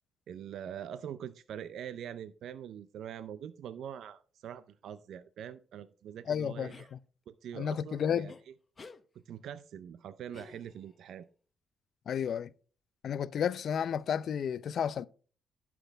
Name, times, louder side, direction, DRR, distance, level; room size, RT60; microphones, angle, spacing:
voice 1, 0.3-6.9 7.3-8.5 9.3-11.3, right 9 dB, 70° right, 0.5 m, -44 dB
voice 2, 6.3-7.0 7.5-8.3 12.1-12.5 13.0-15.1, left 8 dB, 60° left, 0.4 m, -32 dB
sound 1, 6.7-6.9 8.3-8.4 8.8-9.0 10.3-11.0, left 4 dB, 30° left, 0.8 m, -52 dB
11.5 x 6.1 x 3.4 m
cardioid pair, 90°, 0 cm